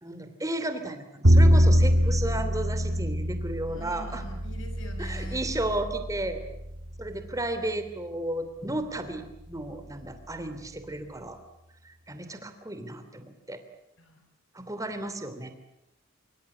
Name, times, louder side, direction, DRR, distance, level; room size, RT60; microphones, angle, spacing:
voice 1, 0.0-4.2 5.0-6.4 7.0-11.4 11.8-13.6 14.5-15.5, right 1 dB, 15° right, 9 dB, 2.9 m, -33 dB
Bowed string instrument, 1.2-7.4, equal, 65° right, 2.2 m, -24 dB
voice 2, 1.5-2.3 3.7-5.5 14.0-14.2, equal, 60° left, 6 dB, 6.6 m, -45 dB
26.0 x 24.5 x 8.6 m, 0.83 s
head